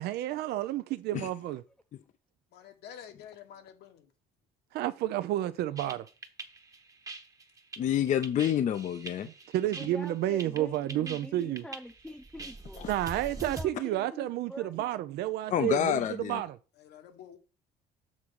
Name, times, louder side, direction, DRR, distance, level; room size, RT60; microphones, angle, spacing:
voice 1, 0.0-1.6 4.7-6.1 9.5-11.6 12.9-16.6, right 14 dB, 75° right, 0.5 m, -31 dB
voice 2, 2.5-4.1 16.8-17.4, left 9 dB, 75° left, 1.5 m, -49 dB
sound 1, 5.8-13.7, right 3 dB, 20° right, 1.0 m, -43 dB
voice 3, 7.8-9.3 12.8-12.9 15.5-16.4, left 10 dB, 50° left, 0.6 m, -28 dB
voice 4, 9.8-12.8 13.3-14.8, equal, 5° left, 0.6 m, -45 dB
7.3 x 3.7 x 6.3 m
cardioid pair, 110°, 17 cm